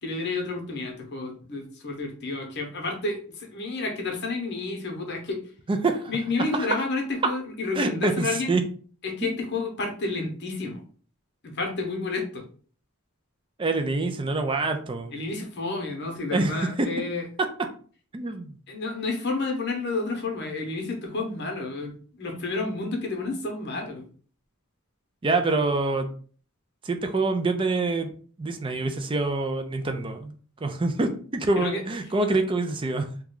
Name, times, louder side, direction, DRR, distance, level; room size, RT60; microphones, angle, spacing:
voice 1, 0.0-5.4 6.1-8.5 9.0-10.8 11.4-12.5 15.1-17.3 18.7-24.1 31.6-31.8, left 3 dB, 50° left, 2 dB, 0.8 m, -30 dB
voice 2, 5.7-6.1 6.6-6.7 7.7-8.6 9.2-9.4 13.6-15.2 16.3-16.9 18.1-18.5 25.2-26.1 26.8-28.1 28.4-33.1, right 3 dB, 20° right, 6 dB, 0.4 m, -26 dB
3.0 x 2.2 x 3.7 m, 0.43 s
head